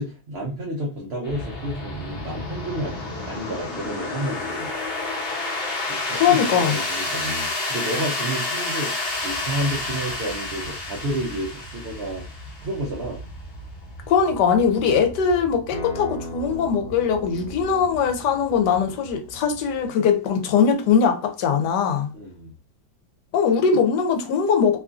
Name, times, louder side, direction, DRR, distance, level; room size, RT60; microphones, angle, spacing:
voice 1, 0.0-4.7 5.9-12.3 12.6-13.2 22.1-22.5, right 1 dB, 70° right, 0.6 m, -30 dB
sound 1, 1.2-19.9, left 2 dB, 40° left, 1.1 m, -31 dB
voice 2, 6.1-6.7 14.1-22.1 23.3-24.8, left 6 dB, 85° left, 1.2 m, -21 dB
Acoustic guitar, 15.7-20.9, equal, 65° left, 1.0 m, -40 dB
2.9 x 2.5 x 2.3 m
omnidirectional pair, 1.8 m